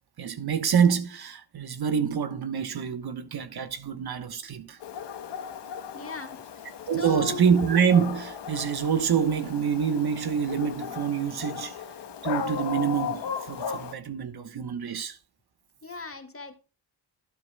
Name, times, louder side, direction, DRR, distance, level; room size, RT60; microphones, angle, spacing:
voice 1, 0.2-4.8 6.9-11.8 12.2-15.2, right 7 dB, 55° right, 1.1 m, -26 dB
Dog, 4.8-13.9, left 7 dB, 65° left, 1.1 m, -36 dB
voice 2, 5.9-6.4 7.0-7.4 15.8-16.6, left 5 dB, 30° left, 1.9 m, -36 dB
12.0 x 10.0 x 2.2 m
supercardioid pair, 55°, 45 cm